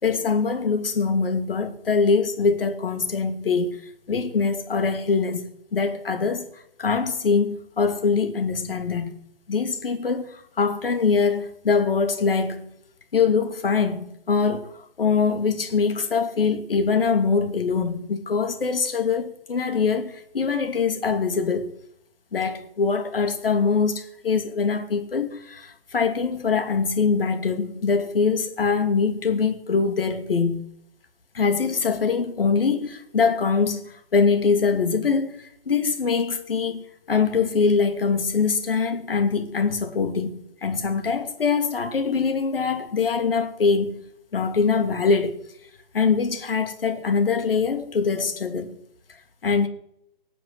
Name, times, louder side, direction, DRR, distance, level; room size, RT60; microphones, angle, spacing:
voice 1, 0.0-3.8 4.1-5.4 5.7-6.5 6.8-9.1 9.5-12.7 13.1-21.7 22.3-30.6 31.3-44.0 44.3-45.4 45.9-48.8 49.4-49.7, left 5 dB, 70° left, 2.6 m, -23 dB
19.0 x 7.6 x 8.0 m
hypercardioid pair, 145°, 29 cm